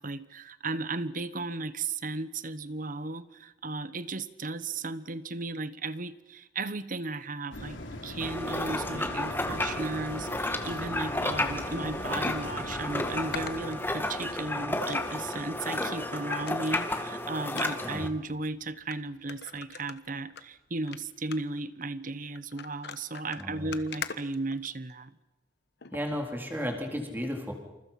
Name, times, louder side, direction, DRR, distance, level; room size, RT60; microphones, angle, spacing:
voice 1, 0.0-25.1, right 3 dB, 45° right, 14 dB, 1.1 m, -35 dB
sound 1, 7.5-18.2 18.6-18.7, left 1 dB, 80° left, 3.7 m, -43 dB
sound 2, 8.2-18.1, left 1 dB, 10° left, 2.0 m, -32 dB
sound 3, 11.9-12.0 12.9-14.4 14.9-15.5 15.8-15.9 16.3-16.8 17.5-17.7 18.4-18.5 18.9-19.0 19.3-20.4 20.8-21.0 21.3-21.6 22.3-25.0 25.8-26.0 26.5-26.6, left 6 dB, 60° left, 1.3 m, -42 dB
voice 2, 23.4-23.7 25.9-27.5, equal, 10° right, 2 dB, 4.0 m, -34 dB
28.0 x 28.0 x 5.9 m, 1.0 s
head